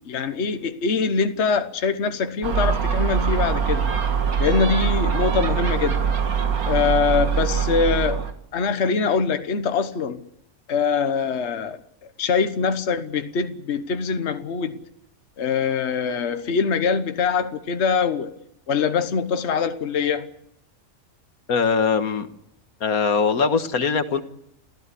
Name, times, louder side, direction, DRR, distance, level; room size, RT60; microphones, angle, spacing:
voice 1, 0.0-3.8 4.4-6.1 6.7-8.2 8.5-10.3 10.7-11.8 12.2-14.8 15.4-18.3 18.7-20.3, left 5 dB, 55° left, 1.4 m, -23 dB
Gull seagull, 2.4-8.3, right 7 dB, 85° right, 2.2 m, -23 dB
voice 2, 21.5-22.3 22.8-24.2, left 5 dB, 80° left, 1.8 m, -21 dB
28.0 x 15.0 x 8.3 m
omnidirectional pair, 1.5 m